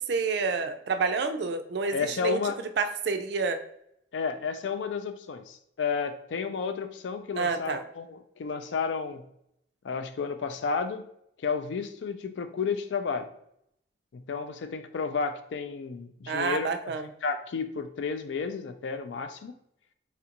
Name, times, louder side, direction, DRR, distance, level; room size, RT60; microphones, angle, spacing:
voice 1, 0.1-2.4 2.8-3.6 7.4-7.8 16.3-17.1, right 4 dB, 65° right, 8 dB, 0.4 m, -28 dB
voice 2, 1.9-2.6 4.1-9.2 9.8-11.1 11.4-13.3 14.1-16.9 17.2-19.5, left 5 dB, 90° left, 8 dB, 0.4 m, -32 dB
4.3 x 2.5 x 2.8 m, 0.74 s
head